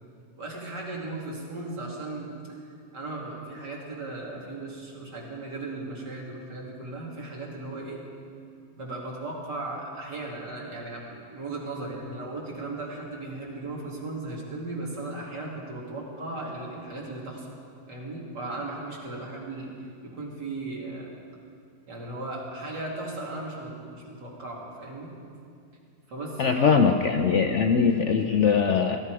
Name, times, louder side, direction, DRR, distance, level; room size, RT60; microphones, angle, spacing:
voice 1, 0.4-2.4 2.9-8.1 8.8-17.5 17.9-19.7 20.0-21.1 21.9-25.1 26.1-26.8, right 2 dB, 85° right, -3 dB, 3.2 m, -36 dB
voice 2, 26.4-29.0, left 6 dB, 60° left, 6 dB, 0.8 m, -21 dB
17.0 x 13.5 x 4.8 m, 2.4 s
omnidirectional pair, 1.8 m